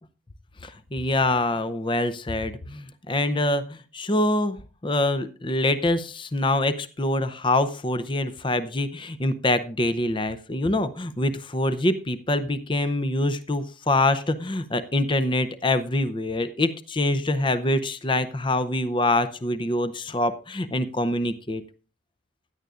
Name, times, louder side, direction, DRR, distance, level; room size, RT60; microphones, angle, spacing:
voice 1, 0.6-4.6 4.8-21.6, left 1 dB, 25° left, 13 dB, 0.6 m, -25 dB
16.0 x 10.5 x 2.5 m, 0.35 s
head